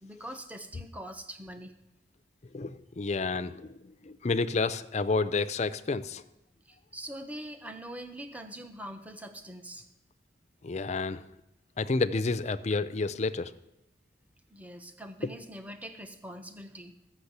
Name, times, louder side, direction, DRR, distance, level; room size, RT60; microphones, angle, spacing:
voice 1, 0.0-1.8 6.7-9.9 14.5-17.0, right 1 dB, 10° right, 7 dB, 0.8 m, -43 dB
voice 2, 2.5-3.8 4.0-6.2 10.6-11.2 11.8-13.5, left 3 dB, 40° left, 12 dB, 0.5 m, -30 dB
13.5 x 6.2 x 8.0 m, 0.90 s
head